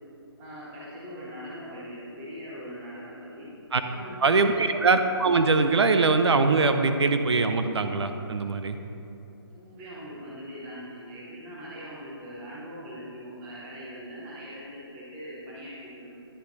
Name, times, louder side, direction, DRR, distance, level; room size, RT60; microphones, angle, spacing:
voice 1, 0.4-3.5 3.8-4.7 9.5-16.2, equal, 10° right, -6 dB, 0.7 m, -41 dB
voice 2, 4.2-8.8, right 3 dB, 80° right, 8 dB, 0.6 m, -22 dB
10.0 x 5.7 x 3.9 m, 2.9 s
hypercardioid pair, 175°, 14 cm